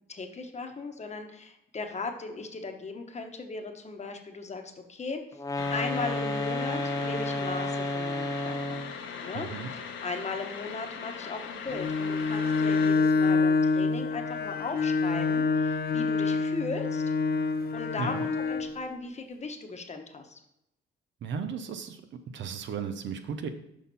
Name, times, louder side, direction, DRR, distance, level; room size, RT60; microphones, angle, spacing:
voice 1, 0.1-5.2 5.7-8.8 9.2-17.0 17.7-20.4, left 3 dB, 35° left, 5 dB, 1.1 m, -37 dB
sound 1, 5.4-9.0, left 2 dB, 15° left, 0.7 m, -31 dB
sound 2, 5.6-12.9, left 6 dB, 75° left, 1.1 m, -40 dB
voice 2, 9.3-9.7 18.0-18.3 21.2-22.0 22.3-23.5, right 6 dB, 70° right, 8 dB, 0.8 m, -35 dB
Bowed string instrument, 11.7-18.8, left 4 dB, 50° left, 0.7 m, -26 dB
6.2 x 5.7 x 4.1 m, 0.82 s
cardioid pair, 90°, 20 cm